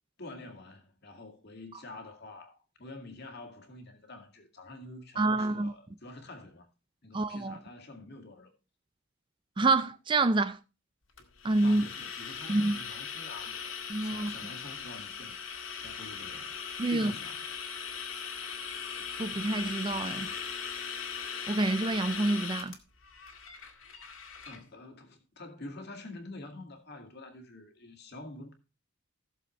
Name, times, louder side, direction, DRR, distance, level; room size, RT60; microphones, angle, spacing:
voice 1, 0.2-6.7 7.0-8.5 11.6-15.5 15.8-16.5 16.9-17.5 24.5-28.5, left 2 dB, 50° left, 2.2 m, -47 dB
voice 2, 5.2-5.7 7.1-7.6 9.6-10.6 11.4-11.9 12.5-12.8 13.9-14.3 16.8-17.1 19.2-20.3 21.5-22.8, right 2 dB, 25° right, 0.4 m, -27 dB
sound 1, 11.2-24.6, left 6 dB, 75° left, 2.0 m, -39 dB
16.5 x 6.9 x 3.2 m
head